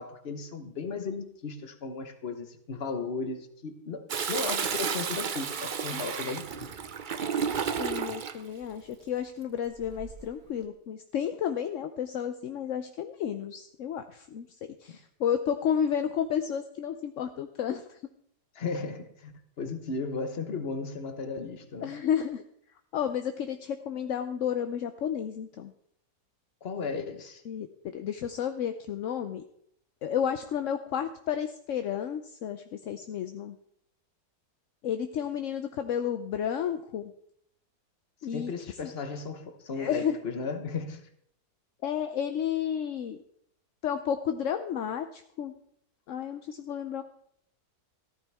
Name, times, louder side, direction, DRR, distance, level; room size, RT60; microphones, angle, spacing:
voice 1, 0.0-6.7 14.9-15.0 18.5-19.3 19.6-22.0 26.6-27.4 38.3-41.1, left 4 dB, 40° left, 8 dB, 1.3 m, -35 dB
Toilet flush, 4.1-8.4 9.8-10.3, right 7 dB, 60° right, 0.5 m, -32 dB
voice 2, 7.8-14.5 14.8-18.0 21.8-22.4 22.9-25.7 27.5-27.7 27.9-29.4 30.0-33.6 34.8-37.1 38.2-38.5 38.8-38.9 39.8-40.1 41.8-43.2 43.8-45.5 46.1-47.0, left 8 dB, 60° left, 8 dB, 0.9 m, -31 dB
15.0 x 13.5 x 3.5 m, 0.71 s
omnidirectional pair, 1.7 m